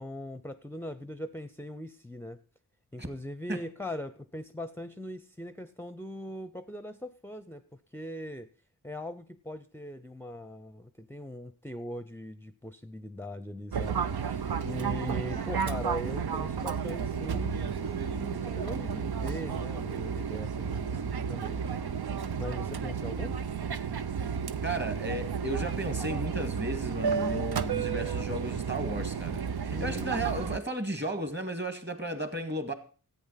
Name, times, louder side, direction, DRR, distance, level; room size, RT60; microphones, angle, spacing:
voice 1, 0.0-2.4 2.9-8.5 8.8-23.4 29.7-30.5, left 1 dB, 5° left, 0.6 m, -41 dB
Fixed-wing aircraft airplane, 13.7-30.6, right 6 dB, 85° right, 0.7 m, -32 dB
voice 2, 24.6-32.7, right 1 dB, 30° right, 2.0 m, -34 dB
14.0 x 8.8 x 5.7 m
wide cardioid pair, 90°, 37 cm